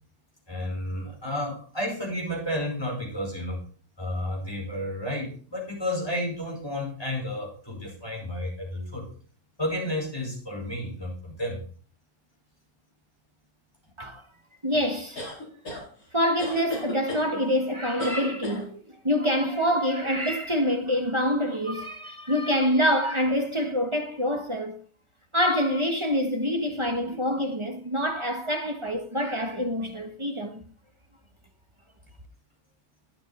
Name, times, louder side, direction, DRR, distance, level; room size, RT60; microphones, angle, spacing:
voice 1, 0.5-3.6 4.0-9.1 9.6-11.6, left 1 dB, 15° left, 5.2 m, -31 dB
voice 2, 14.6-15.2 16.1-24.7 25.3-30.6, equal, 20° right, 1.1 m, -26 dB
sound 1, 15.2-15.8 16.4-17.3 18.0-18.6, left 2 dB, 65° left, 4.4 m, -34 dB
12.0 x 8.9 x 4.2 m
omnidirectional pair, 1.7 m